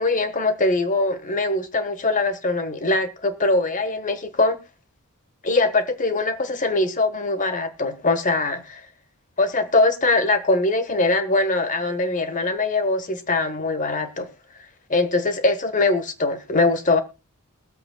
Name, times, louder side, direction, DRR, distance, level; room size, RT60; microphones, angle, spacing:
voice 1, 0.0-4.6 5.4-8.8 9.4-14.3 14.9-17.0, left 2 dB, 35° left, 1.3 m, -22 dB
22.0 x 7.8 x 2.3 m
head